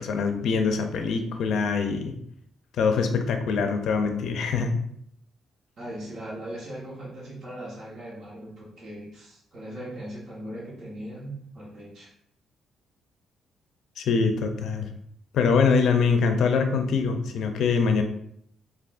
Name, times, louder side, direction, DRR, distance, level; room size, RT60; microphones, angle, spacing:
voice 1, 0.0-2.1 2.7-4.8 14.0-14.9 15.3-18.0, left 5 dB, 70° left, 5 dB, 0.4 m, -24 dB
voice 2, 5.8-12.1, right 1 dB, 55° right, -6 dB, 1.1 m, -39 dB
3.5 x 2.3 x 2.5 m, 0.70 s
cardioid pair, 90°, 0 cm